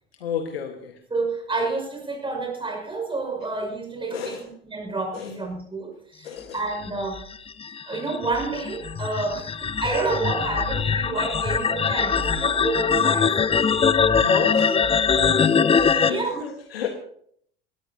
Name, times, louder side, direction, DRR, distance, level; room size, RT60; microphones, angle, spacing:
voice 1, 0.2-1.0 4.1-4.5 5.1-5.3 6.2-6.6 14.2-15.5 16.0-16.9, left 7 dB, 75° left, 5 dB, 1.6 m, -31 dB
voice 2, 1.1-4.4 4.7-7.3 7.9-13.4 15.7-16.4, right 3 dB, 15° right, 3 dB, 5.9 m, -29 dB
sound 1, 6.8-16.1, left 6 dB, 20° left, 0.8 m, -22 dB
21.0 x 17.5 x 2.9 m, 0.63 s
figure-of-eight pair, 70°, 30 cm